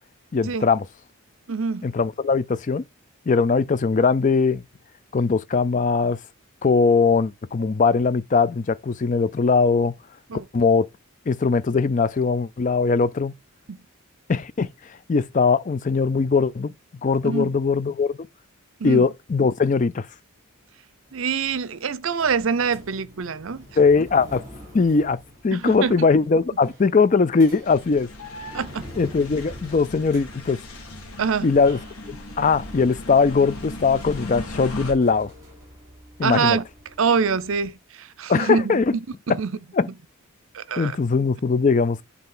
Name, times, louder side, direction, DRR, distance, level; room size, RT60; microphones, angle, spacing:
voice 1, 0.3-0.9 1.8-2.8 3.3-4.6 5.1-6.2 6.6-9.9 10.5-10.9 11.3-13.3 14.3-14.7 15.1-16.7 17.0-18.2 18.8-20.1 23.8-24.4 24.7-25.2 25.4-28.1 29.0-30.6 31.4-31.8 32.1-35.3 36.2-36.6 38.3-39.0 39.7-39.9 40.8-42.0, left 4 dB, 35° left, 0.4 m, -20 dB
voice 2, 1.5-1.9 10.3-10.4 13.7-13.8 17.2-17.5 18.8-19.1 21.1-23.6 25.5-26.1 28.5-28.9 31.2-31.5 36.2-36.6 37.0-38.8 39.3-39.5 40.5-41.0, right 5 dB, 65° right, 0.6 m, -25 dB
sound 1, 21.1-37.7, equal, 15° right, 3.5 m, -46 dB
sound 2, 27.6-34.9, left 1 dB, 85° left, 1.5 m, -38 dB
8.1 x 4.0 x 3.8 m
head